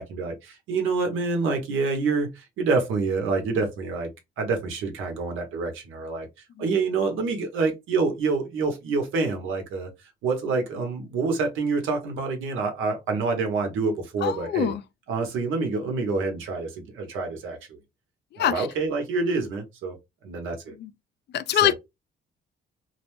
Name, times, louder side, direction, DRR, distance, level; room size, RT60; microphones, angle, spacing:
voice 1, 0.0-4.1 4.4-6.3 6.6-9.9 10.2-14.7 15.1-17.8 18.4-20.0 20.2-20.7 21.6-21.7, right 4 dB, 85° right, 0.9 m, -27 dB
voice 2, 14.2-14.8 18.4-18.7 20.8-20.9 21.3-21.7, left 10 dB, 60° left, 0.4 m, -23 dB
2.7 x 2.1 x 3.0 m
cardioid pair, 90°, 20 cm